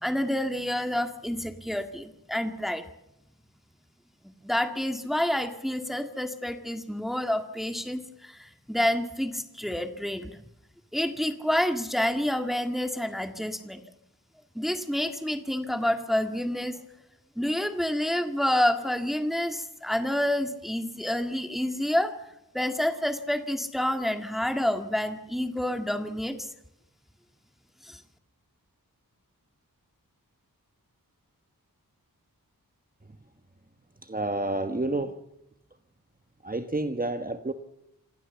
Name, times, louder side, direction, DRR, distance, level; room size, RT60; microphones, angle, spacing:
voice 1, 0.0-2.9 4.4-10.4 10.9-13.8 14.6-16.8 17.4-22.1 22.5-26.5 27.8-28.0, left 1 dB, ahead, 1.9 m, -28 dB
voice 2, 34.0-35.2 36.4-37.5, right 2 dB, 25° right, 1.3 m, -29 dB
27.0 x 15.5 x 7.1 m
wide cardioid pair, 50°, 36 cm